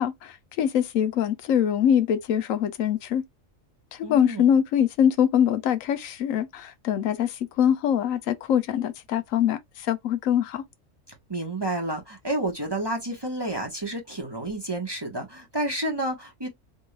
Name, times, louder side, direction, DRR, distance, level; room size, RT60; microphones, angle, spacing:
voice 1, 0.0-3.2 4.1-10.6, left 9 dB, 85° left, 1.0 m, -23 dB
voice 2, 4.0-4.5 11.3-16.5, right 1 dB, 20° right, 0.9 m, -30 dB
4.3 x 2.3 x 3.1 m
omnidirectional pair, 1.3 m